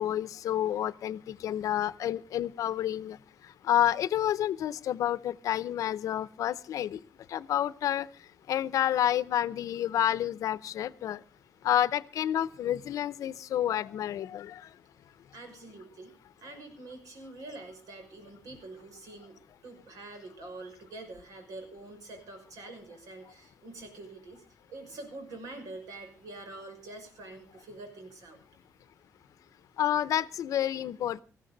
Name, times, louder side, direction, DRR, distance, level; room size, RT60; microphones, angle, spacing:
voice 1, 0.0-3.2 3.7-7.0 7.3-8.1 8.5-11.2 11.6-14.6 29.8-31.2, left 11 dB, 70° left, 17 dB, 0.7 m, -29 dB
voice 2, 15.3-16.1 16.4-19.4 19.6-24.4 24.7-28.4, right 2 dB, 75° right, 5 dB, 5.8 m, -45 dB
19.0 x 15.0 x 3.9 m, 0.35 s
cardioid pair, 160°, 6 cm